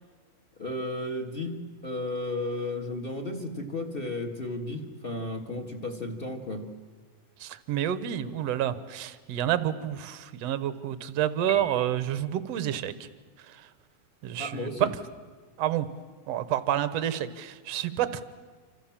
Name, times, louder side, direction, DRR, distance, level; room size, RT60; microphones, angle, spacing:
voice 1, 0.5-6.7 14.4-14.9, left 2 dB, 25° left, 6 dB, 1.3 m, -34 dB
voice 2, 7.4-13.1 13.4-13.7 14.2-14.9 15.6-15.9 16.3-18.2, right 11 dB, 65° right, 13 dB, 1.7 m, -29 dB
Piano, 11.5-12.4, right 2 dB, ahead, 1.0 m, -41 dB
28.5 x 26.0 x 7.4 m, 1.5 s
omnidirectional pair, 4.4 m